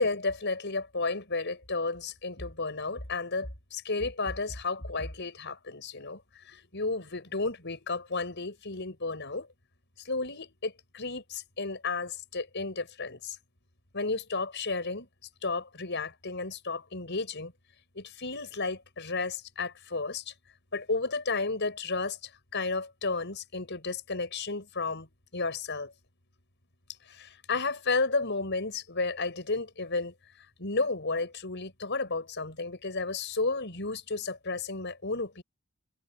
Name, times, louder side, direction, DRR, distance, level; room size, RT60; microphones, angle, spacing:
voice 1, 0.0-9.5 10.0-13.4 13.9-15.1 15.4-17.5 17.9-20.3 20.7-25.1 25.3-25.9 27.0-35.4, left 3 dB, 55° left, 6.2 m, -32 dB
head